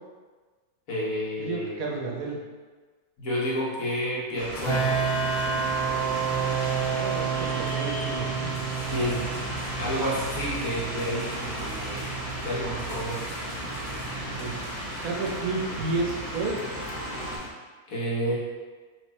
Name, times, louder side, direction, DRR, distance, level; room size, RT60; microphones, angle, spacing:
voice 1, 0.9-2.2 3.2-4.9 8.9-9.3 9.8-12.1 12.4-13.2 17.9-18.4, equal, 65° left, -5 dB, 1.4 m, -30 dB
voice 2, 1.4-2.4 6.9-8.5 14.4-14.5 15.0-16.6, right 3 dB, 70° right, -1 dB, 1.1 m, -31 dB
sound 1, 4.4-17.4, right 1 dB, 45° left, 1.6 m, -35 dB
sound 2, 4.5-17.5, left 3 dB, 85° left, 1.2 m, -41 dB
sound 3, 4.6-17.5, right 6 dB, 20° right, 1.0 m, -32 dB
3.3 x 3.2 x 4.1 m, 1.4 s
omnidirectional pair, 1.6 m